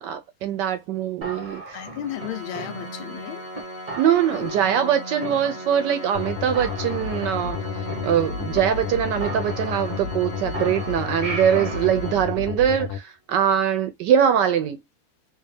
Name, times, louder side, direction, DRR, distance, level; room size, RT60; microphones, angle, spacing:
voice 1, 0.0-1.8 4.0-14.8, right 9 dB, 75° right, 1.1 m, -22 dB
sound 1, 1.2-3.2 3.5-3.6 3.9-4.9 5.2-5.9 6.2-6.3 6.5-8.6 8.9-9.0 9.2-10.2 10.5-11.9, right 2 dB, 40° right, 0.5 m, -36 dB
voice 2, 1.7-3.5 4.3-4.5 4.8-4.9, left 11 dB, 85° left, 1.5 m, -34 dB
Organ, 2.0-12.9, right 1 dB, 45° left, 0.6 m, -37 dB
sound 2, 6.1-13.0, left 7 dB, 70° left, 1.0 m, -31 dB
3.3 x 2.8 x 3.1 m
omnidirectional pair, 2.2 m